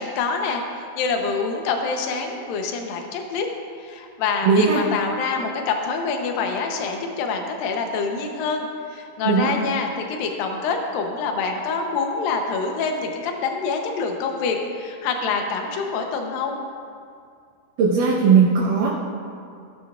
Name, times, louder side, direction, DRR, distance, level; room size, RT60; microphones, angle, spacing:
voice 1, 0.0-3.5 3.8-16.6, left 4 dB, 70° left, 3 dB, 2.4 m, -26 dB
voice 2, 4.4-4.8 9.3-9.5 17.8-18.9, right 5 dB, 65° right, -5 dB, 2.3 m, -17 dB
16.5 x 10.5 x 2.5 m, 2.3 s
omnidirectional pair, 4.8 m